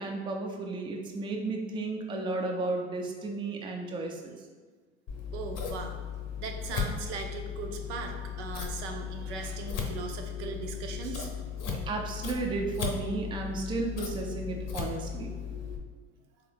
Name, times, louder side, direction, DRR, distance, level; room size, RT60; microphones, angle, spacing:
voice 1, 0.0-4.4 11.6-15.3, right 3 dB, 15° right, 1 dB, 0.4 m, -33 dB
Scissors, 5.1-15.8, left 7 dB, 50° left, 0.7 m, -36 dB
voice 2, 5.3-6.0 6.3-11.3, right 4 dB, 70° right, 4 dB, 0.5 m, -39 dB
3.6 x 2.0 x 3.2 m, 1.5 s
hypercardioid pair, 75°, 35 cm